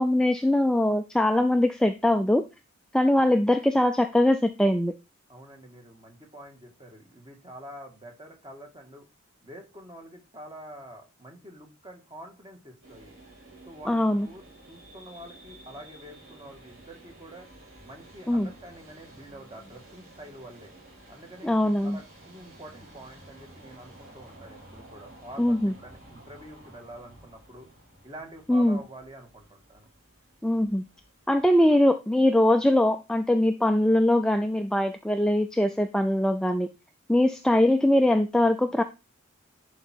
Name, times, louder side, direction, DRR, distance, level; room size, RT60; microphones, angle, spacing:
voice 1, 0.0-2.4 2.9-4.9 13.9-14.3 18.3-18.5 21.4-22.0 25.4-25.7 28.5-28.8 30.4-30.8 31.3-36.7 37.1-38.8, left 1 dB, 5° left, 7 dB, 0.3 m, -22 dB
voice 2, 5.3-9.1 9.4-13.2 13.7-17.5 17.8-20.7 21.1-27.7 28.0-29.9, right 1 dB, 20° right, 3 dB, 1.8 m, -46 dB
sound 1, 12.8-31.7, right 1 dB, 45° right, 4.6 m, -52 dB
10.5 x 4.7 x 4.4 m, 0.28 s
head